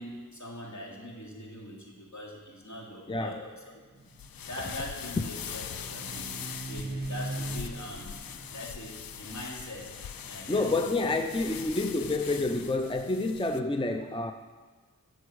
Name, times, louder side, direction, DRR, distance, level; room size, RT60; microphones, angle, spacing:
voice 1, 0.0-4.1 4.4-6.3 6.7-9.9 10.3-10.7 11.0-11.1, left 1 dB, 55° left, -3 dB, 3.3 m, -42 dB
voice 2, 3.1-3.4 10.5-14.3, left 2 dB, 15° left, 6 dB, 0.6 m, -28 dB
sound 1, 3.7-11.7, right 2 dB, 30° right, 1.3 m, -42 dB
sound 2, 4.1-13.6, left 8 dB, 90° left, 0.5 m, -42 dB
11.5 x 6.5 x 8.2 m, 1.4 s
wide cardioid pair, 50°, 34 cm